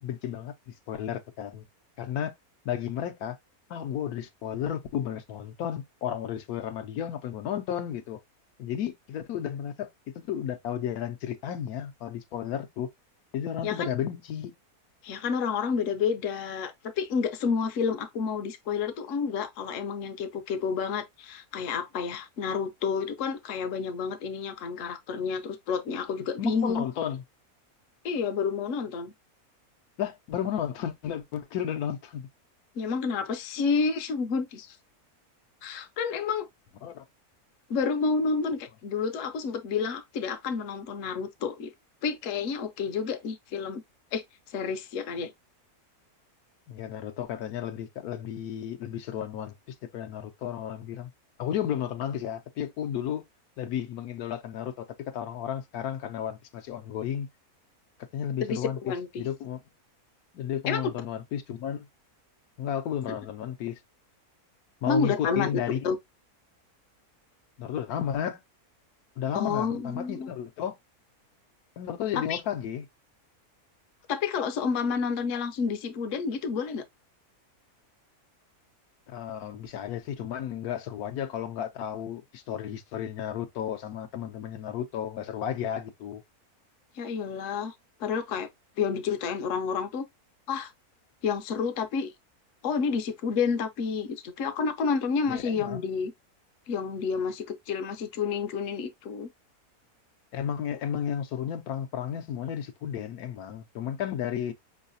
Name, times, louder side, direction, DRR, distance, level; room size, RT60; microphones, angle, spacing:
voice 1, 0.0-1.7 2.0-2.3 2.6-3.4 3.7-8.2 8.6-9.9 10.1-12.9 13.3-14.5 26.4-27.2 30.0-32.3 36.8-37.0 46.7-49.5 49.9-51.1 51.4-53.2 53.6-57.3 58.1-58.8 59.2-59.6 60.3-61.9 62.6-63.8 64.8-65.9 67.6-68.4 69.2-70.8 71.8-72.9 79.1-86.2 95.3-95.9 100.3-104.5, left 9 dB, 80° left, 1.1 m, -33 dB
voice 2, 15.0-26.8 28.0-29.1 32.8-34.8 35.6-36.5 37.7-41.7 42.0-43.8 44.1-45.3 58.4-59.3 60.7-60.8 64.9-65.6 65.8-66.0 69.3-70.3 72.1-72.4 74.1-76.8 87.0-87.7 88.0-88.5 88.8-90.0 90.5-90.7 91.2-92.1 92.6-96.1 96.7-99.3, left 5 dB, 65° left, 0.9 m, -30 dB
5.4 x 3.1 x 2.5 m
omnidirectional pair, 1.6 m